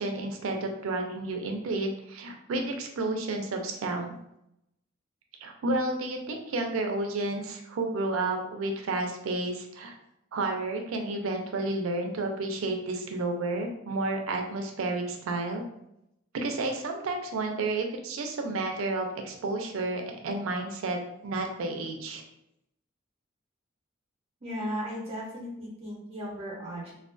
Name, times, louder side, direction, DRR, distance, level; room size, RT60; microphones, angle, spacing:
voice 1, 0.0-4.1 5.4-10.0 10.3-15.6 16.3-22.2, right 2 dB, 85° right, 3 dB, 0.4 m, -31 dB
voice 2, 24.4-26.9, equal, 30° right, -4 dB, 0.6 m, -36 dB
2.2 x 2.2 x 2.4 m, 0.81 s
head